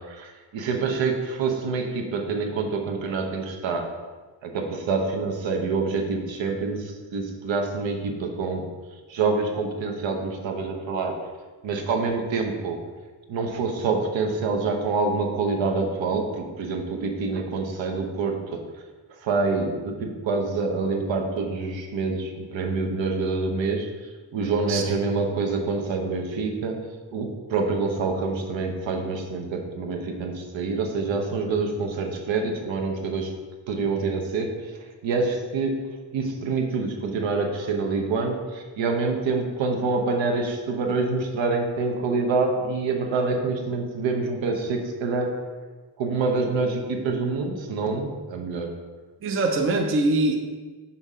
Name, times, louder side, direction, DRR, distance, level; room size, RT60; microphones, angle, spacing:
voice 1, 0.0-4.0 4.4-8.7 9.1-11.2 11.6-12.8 13.3-18.6 19.2-33.3 33.7-45.4 46.0-48.7, right 4 dB, 80° right, 3 dB, 1.0 m, -26 dB
voice 2, 49.2-50.3, right 2 dB, 30° right, 3 dB, 0.5 m, -23 dB
5.6 x 3.7 x 5.5 m, 1.3 s
wide cardioid pair, 180°, 45 cm